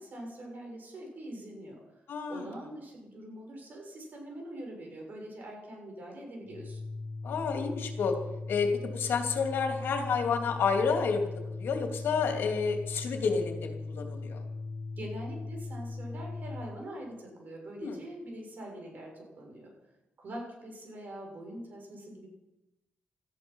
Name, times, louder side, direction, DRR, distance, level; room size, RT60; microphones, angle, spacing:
voice 1, 0.0-1.8 2.3-6.8 15.0-19.1 19.4-19.7 20.2-22.3, right 1 dB, 55° right, 1 dB, 7.0 m, -43 dB
voice 2, 2.1-2.4 7.2-8.2 8.5-14.4 17.8-18.0, left 5 dB, 85° left, 4 dB, 2.8 m, -30 dB
Organ, 6.4-16.7, left 3 dB, 60° left, 6.4 m, -39 dB
18.5 x 13.5 x 5.6 m, 0.96 s
cardioid pair, 110°, 4 cm